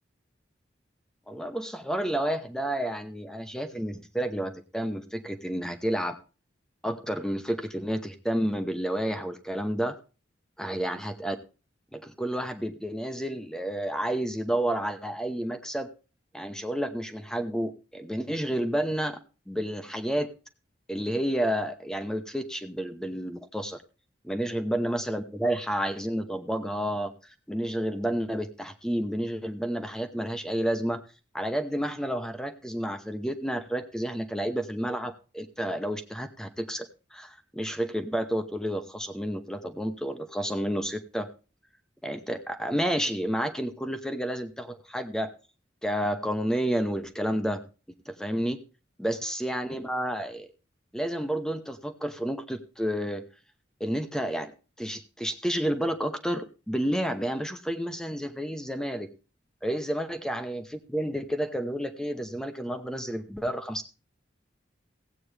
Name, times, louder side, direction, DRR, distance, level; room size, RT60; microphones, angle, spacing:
voice 1, 1.3-6.2 6.8-10.0 10.6-11.4 11.9-15.9 16.3-19.2 19.5-20.3 20.9-23.8 24.2-27.1 27.5-31.0 31.3-36.9 37.1-41.3 42.0-45.3 45.8-47.6 48.1-48.6 49.0-50.5 50.9-53.2 53.8-54.5 54.8-59.1 59.6-63.9, right 1 dB, 5° left, 8 dB, 0.9 m, -30 dB
16.0 x 8.6 x 3.3 m, 0.33 s
head